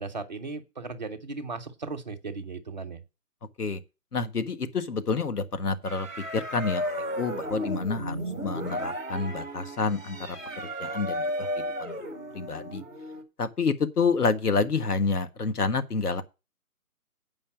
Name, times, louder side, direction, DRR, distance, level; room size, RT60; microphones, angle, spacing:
voice 1, 0.0-3.0, right 3 dB, 30° right, 0.9 m, -36 dB
voice 2, 4.1-6.1 6.3-8.2 8.4-10.4 10.6-11.5 11.8-12.0 12.3-12.8 13.4-16.2, left 4 dB, 75° left, 1.7 m, -28 dB
sound 1, 5.8-13.2, equal, 5° left, 1.0 m, -34 dB
8.6 x 5.6 x 7.2 m
hypercardioid pair, 165°, 46 cm